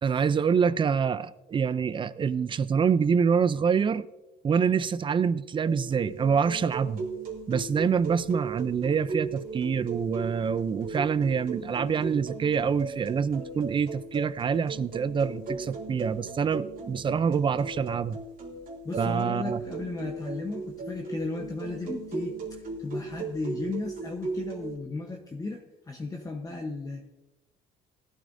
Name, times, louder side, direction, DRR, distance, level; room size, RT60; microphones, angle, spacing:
voice 1, 0.0-4.1 4.4-7.0 7.5-18.2 19.0-19.6, right 6 dB, 30° right, 0.5 m, -26 dB
sound 1, 5.7-24.8, right 3 dB, 55° right, 2.7 m, -37 dB
voice 2, 18.8-27.1, left 3 dB, 20° left, 1.0 m, -35 dB
17.0 x 12.0 x 2.7 m
cardioid pair, 110°, 17 cm